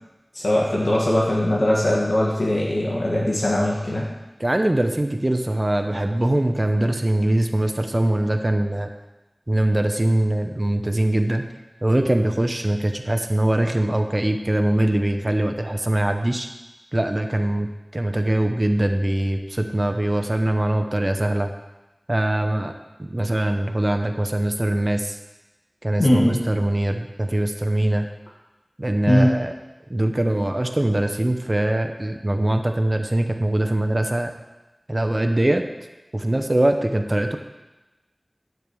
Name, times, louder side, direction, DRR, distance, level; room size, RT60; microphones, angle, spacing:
voice 1, 0.3-4.1 26.0-26.4 29.1-29.3, left 1 dB, 90° left, -4 dB, 1.5 m, -20 dB
voice 2, 4.4-8.9 9.5-11.4 11.8-16.5 16.9-17.7 17.9-21.5 22.1-22.7 23.0-25.2 25.8-28.1 28.8-29.5 29.9-34.3 34.9-35.6 36.1-37.4, right 1 dB, 35° right, 6 dB, 0.8 m, -22 dB
9.3 x 4.7 x 6.9 m, 1.1 s
wide cardioid pair, 50°, 0 cm